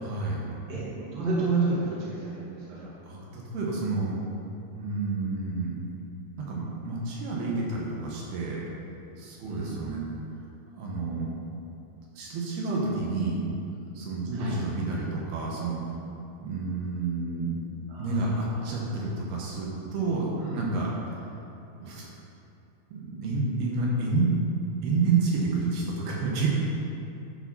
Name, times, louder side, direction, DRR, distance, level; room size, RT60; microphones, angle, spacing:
voice 1, 0.0-0.5 3.0-4.2 4.7-5.8 6.4-8.7 9.2-10.0 10.7-11.3 12.1-13.4 14.0-15.8 16.4-17.5 18.0-20.3 20.5-21.2 21.8-22.1 22.9-24.3 24.8-26.5, right 3 dB, 85° right, -4 dB, 3.2 m, -29 dB
voice 2, 0.7-2.9 9.4-9.8 14.3-14.6 17.9-18.6 20.4-20.6, right 3 dB, 50° right, -7 dB, 2.9 m, -31 dB
10.5 x 4.9 x 5.5 m, 2.6 s
omnidirectional pair, 4.4 m